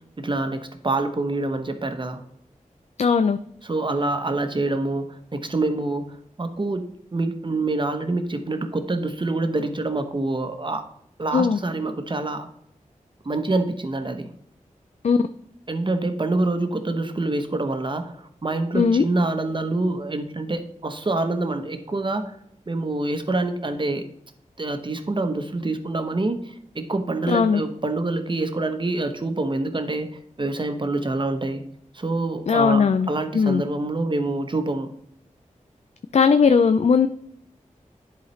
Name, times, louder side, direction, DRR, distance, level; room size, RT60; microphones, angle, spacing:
voice 1, 0.2-2.2 3.6-10.8 11.2-12.5 13.2-14.3 15.7-22.3 22.7-24.1 24.6-31.6 31.9-34.9, right 2 dB, 35° right, 7 dB, 0.9 m, -26 dB
voice 2, 3.0-3.4 11.3-11.6 15.0-15.2 18.7-19.0 27.3-27.6 32.5-33.6 36.1-37.1, left 5 dB, 55° left, 10 dB, 0.4 m, -18 dB
10.5 x 4.0 x 3.2 m, 0.72 s
wide cardioid pair, 60°, 14 cm